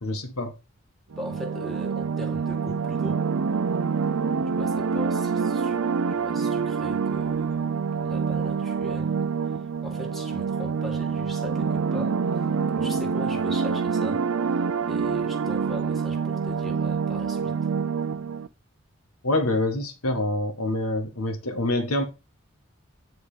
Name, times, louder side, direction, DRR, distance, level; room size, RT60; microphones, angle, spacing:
voice 1, 0.0-0.5 19.2-22.0, left 1 dB, 85° left, 1.7 m, -26 dB
voice 2, 1.1-3.2 4.5-5.8 6.1-9.2 9.5-12.5 12.7-14.3 14.9-17.7, equal, ahead, 2.0 m, -40 dB
sound 1, 1.1-18.5, right 5 dB, 70° right, 0.5 m, -26 dB
9.5 x 3.9 x 5.1 m
head